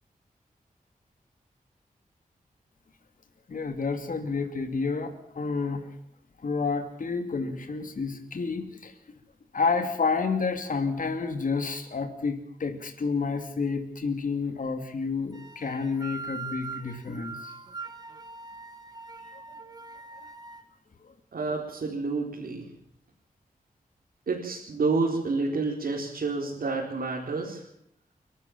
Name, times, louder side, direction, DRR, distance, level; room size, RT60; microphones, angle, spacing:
voice 1, 3.5-5.9 6.4-8.9 9.5-17.5 19.3-19.4 20.2-20.3 21.0-21.1, left 4 dB, 65° left, 6 dB, 2.8 m, -30 dB
sound 1, 15.3-20.6, right 4 dB, 25° right, 1.7 m, -41 dB
voice 2, 21.3-22.7 24.3-27.7, right 3 dB, 85° right, -2 dB, 4.2 m, -29 dB
29.0 x 13.0 x 7.4 m, 0.75 s
wide cardioid pair, 110°, 15 cm